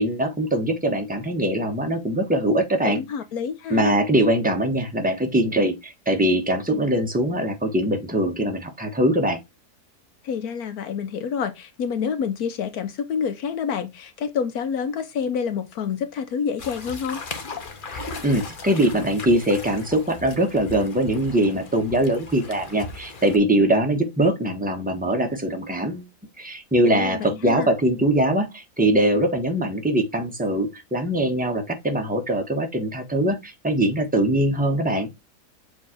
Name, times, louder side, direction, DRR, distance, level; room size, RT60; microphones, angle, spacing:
voice 1, 0.0-3.0 3.7-9.4 17.9-26.1 26.4-35.1, right 1 dB, 5° right, 1.0 m, -22 dB
voice 2, 2.8-3.9 10.2-17.2 26.8-27.7, left 6 dB, 75° left, 1.2 m, -28 dB
sound 1, 16.6-23.4, left 3 dB, 40° left, 1.0 m, -37 dB
7.3 x 3.3 x 4.3 m
omnidirectional pair, 1.7 m